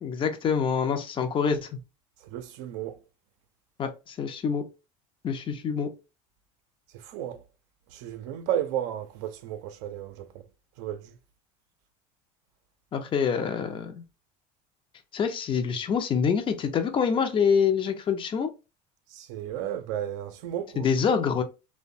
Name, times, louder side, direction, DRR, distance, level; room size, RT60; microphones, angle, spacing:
voice 1, 0.0-1.7 3.8-4.6 5.2-5.9 12.9-13.9 15.1-18.5 20.8-21.4, left 6 dB, 30° left, 0.5 m, -26 dB
voice 2, 2.2-3.0 6.9-7.4 7.9-10.4 10.8-11.2 19.1-20.9, right 10 dB, 70° right, 0.5 m, -33 dB
2.6 x 2.1 x 2.5 m
supercardioid pair, 100°, 16 cm